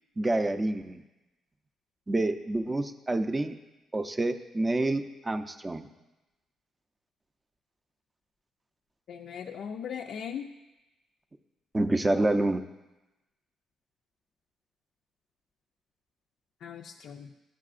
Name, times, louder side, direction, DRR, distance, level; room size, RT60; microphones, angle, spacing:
voice 1, 0.2-1.0 2.1-3.6 3.9-5.9 11.7-12.6, right 2 dB, 20° right, 8 dB, 0.5 m, -28 dB
voice 2, 9.1-10.5 16.6-17.3, left 8 dB, 70° left, 3 dB, 0.3 m, -39 dB
12.0 x 7.6 x 2.5 m, 1.0 s
cardioid pair, 90°, 0 cm